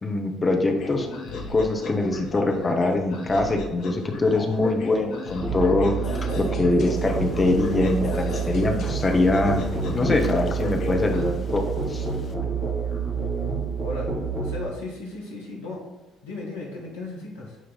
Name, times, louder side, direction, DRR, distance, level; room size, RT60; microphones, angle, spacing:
voice 1, 0.0-1.1 1.5-9.7 9.9-11.6 11.9-12.1, left 2 dB, 25° left, 3 dB, 0.9 m, -23 dB
sound 1, 0.8-11.2, left 3 dB, 60° left, 1.1 m, -35 dB
Musical instrument, 5.4-14.6, right 5 dB, 40° right, 2.1 m, -28 dB
sound 2, 6.9-12.3, left 5 dB, 40° left, 0.6 m, -37 dB
voice 2, 13.1-14.1 14.4-15.8 16.2-17.6, left 2 dB, 80° left, -4 dB, 1.6 m, -36 dB
9.1 x 3.2 x 4.0 m, 1.1 s
figure-of-eight pair, 50°, 0 cm